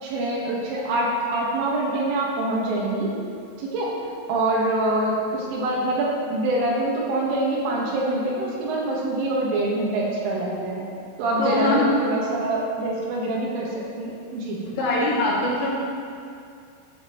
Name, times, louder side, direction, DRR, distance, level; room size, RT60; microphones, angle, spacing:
voice 1, 0.0-3.1 3.6-3.9 4.3-10.8 11.2-14.6, right 2 dB, 80° right, -4 dB, 4.0 m, -25 dB
voice 2, 11.4-11.9 14.8-15.7, left 2 dB, 75° left, -8 dB, 5.2 m, -22 dB
15.0 x 9.8 x 3.1 m, 2.4 s
omnidirectional pair, 5.7 m